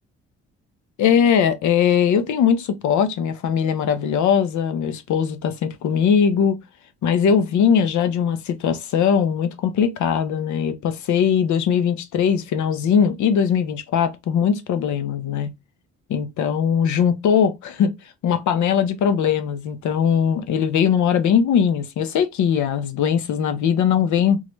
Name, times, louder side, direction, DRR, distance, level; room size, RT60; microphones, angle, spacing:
voice 1, 1.0-6.6 7.0-15.5 16.1-17.9 18.2-24.4, left 7 dB, 70° left, 0.7 m, -20 dB
3.8 x 2.1 x 3.0 m
cardioid pair, 90°, 30 cm